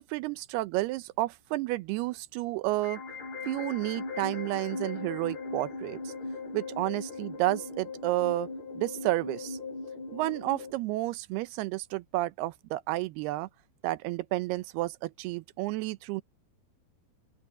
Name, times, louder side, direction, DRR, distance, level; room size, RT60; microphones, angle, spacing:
voice 1, 0.0-3.0 3.5-6.1 6.5-8.5 8.8-9.6 10.1-13.5 13.8-16.2, right 18 dB, 80° right, 2.5 m, -31 dB
sound 1, 2.7-10.7, left 3 dB, 50° left, 3.7 m, -39 dB
open air
omnidirectional pair, 5.2 m